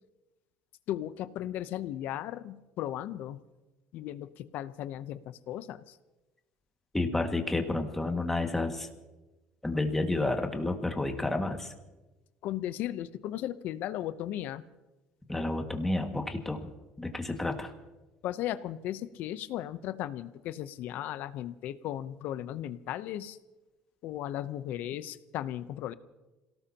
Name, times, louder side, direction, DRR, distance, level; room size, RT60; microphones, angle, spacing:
voice 1, 0.9-3.4 3.9-6.0 12.4-14.6 18.2-23.4 24.0-25.9, left 12 dB, 65° left, 14 dB, 0.7 m, -36 dB
voice 2, 6.9-8.9 9.6-11.7 15.3-16.7 17.0-17.7, left 2 dB, 10° left, 4 dB, 1.9 m, -30 dB
27.5 x 18.0 x 2.9 m, 1.1 s
cardioid pair, 110°, 3 cm